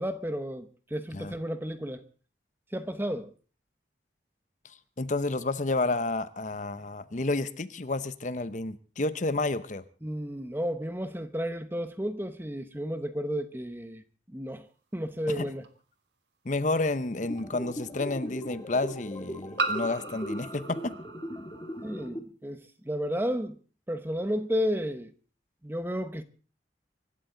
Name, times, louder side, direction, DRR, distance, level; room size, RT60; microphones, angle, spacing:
voice 1, 0.0-2.0 2.7-3.3 10.0-14.0 14.3-14.7 14.9-15.6 21.8-23.6 23.9-25.1 25.6-26.2, equal, 10° right, 1.0 m, -32 dB
voice 2, 4.6-9.8 15.3-15.5 16.4-20.9, left 2 dB, 40° left, 0.8 m, -30 dB
sound 1, 15.6-15.7 17.4-17.5 19.6-22.1, right 3 dB, 70° right, 1.6 m, -35 dB
sound 2, 17.2-22.2, equal, 20° left, 1.5 m, -39 dB
25.0 x 12.5 x 3.9 m
head